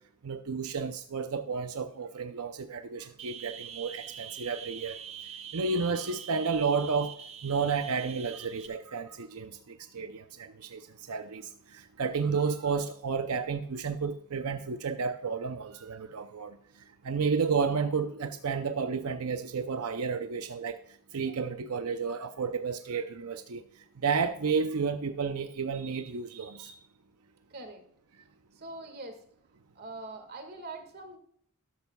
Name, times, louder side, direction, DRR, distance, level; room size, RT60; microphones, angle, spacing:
voice 1, 0.2-5.0 5.5-7.2 7.4-16.6 17.0-20.8 21.1-23.6 24.0-26.7, right 5 dB, 85° right, 0.6 m, -31 dB
sound 1, 3.2-8.7, right 9 dB, 30° right, 0.7 m, -44 dB
voice 2, 27.5-27.8 28.5-29.2 29.7-31.2, right 2 dB, 45° right, 1.8 m, -43 dB
13.5 x 11.5 x 2.3 m
head